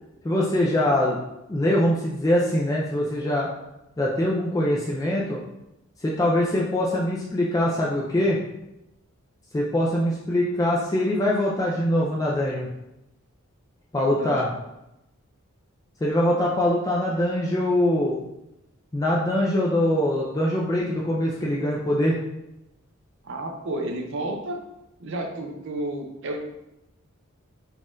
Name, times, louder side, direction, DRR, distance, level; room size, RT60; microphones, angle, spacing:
voice 1, 0.2-1.2 1.5-3.5 4.0-5.4 6.0-8.4 9.5-12.7 13.9-14.5 16.0-18.2 18.9-22.2, left 1 dB, 15° left, -4 dB, 0.3 m, -23 dB
voice 2, 13.9-14.5 23.2-24.6 25.0-26.4, right 1 dB, 60° right, 2 dB, 0.6 m, -31 dB
4.1 x 2.3 x 3.7 m, 0.89 s
head